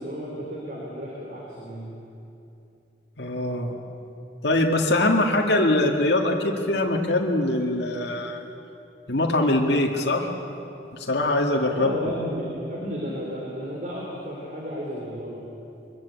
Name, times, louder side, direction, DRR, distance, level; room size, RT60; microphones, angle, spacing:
voice 1, 0.0-1.9 11.7-15.4, equal, 45° right, -3 dB, 3.9 m, -33 dB
voice 2, 3.2-3.7 4.4-8.4 9.1-10.4 10.9-11.9, left 1 dB, 70° left, 0 dB, 2.0 m, -23 dB
23.5 x 21.0 x 8.4 m, 2.8 s
head